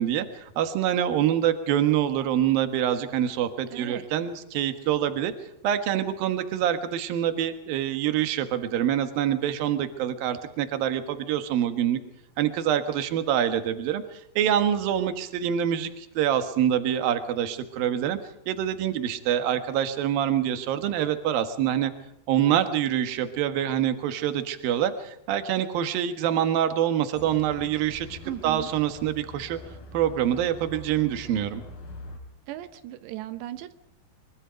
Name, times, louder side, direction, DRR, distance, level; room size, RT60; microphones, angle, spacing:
voice 1, 0.0-5.3 5.6-12.0 12.4-18.2 18.5-21.9 22.3-29.6 29.9-31.6, right 10 dB, 65° right, 9 dB, 3.1 m, -25 dB
voice 2, 3.7-4.1 28.2-28.7 32.5-33.7, right 14 dB, 90° right, 11 dB, 3.1 m, -37 dB
sound 1, 27.1-32.2, left 2 dB, 60° left, 6.2 m, -44 dB
24.5 x 23.5 x 5.2 m, 0.81 s
omnidirectional pair, 4.8 m